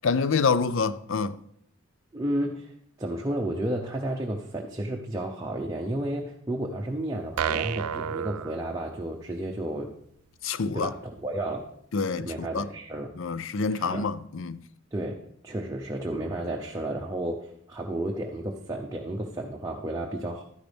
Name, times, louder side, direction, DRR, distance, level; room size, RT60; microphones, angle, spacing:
voice 1, 0.0-1.4 10.4-10.9 11.9-12.7 13.2-14.6, left 5 dB, 60° left, 0.5 m, -27 dB
voice 2, 2.1-2.7 3.0-9.9 10.7-11.6 12.2-13.2 13.7-14.1 14.9-20.4, right 1 dB, 15° right, 0.7 m, -32 dB
sound 1, 7.4-9.3, right 8 dB, 85° right, 0.4 m, -31 dB
12.0 x 10.5 x 3.4 m
head